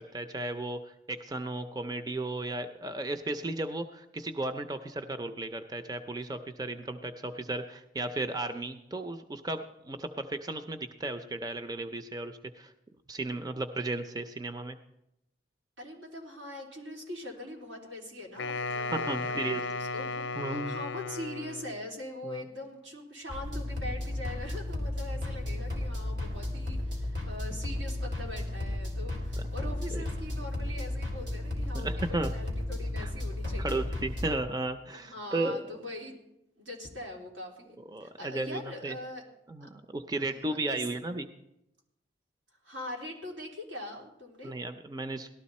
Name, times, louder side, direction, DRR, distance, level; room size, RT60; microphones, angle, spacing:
voice 1, 0.0-12.7 13.1-14.8 19.1-19.6 20.4-20.7 22.2-22.4 29.9-30.0 31.7-32.3 33.0-33.1 33.6-35.8 37.9-39.0 39.5-41.3 44.4-45.3, right 2 dB, 20° right, 8 dB, 0.5 m, -35 dB
voice 2, 15.8-33.8 34.9-36.2 36.6-39.2 39.6-39.7 40.1-40.8 42.6-44.5, left 1 dB, 90° right, -1 dB, 3.5 m, -42 dB
Wind instrument woodwind instrument, 18.4-21.8, left 4 dB, 80° left, 0.5 m, -35 dB
sound 1, 23.3-34.4, left 1 dB, 75° right, 3.9 m, -34 dB
18.0 x 13.0 x 4.2 m, 0.87 s
head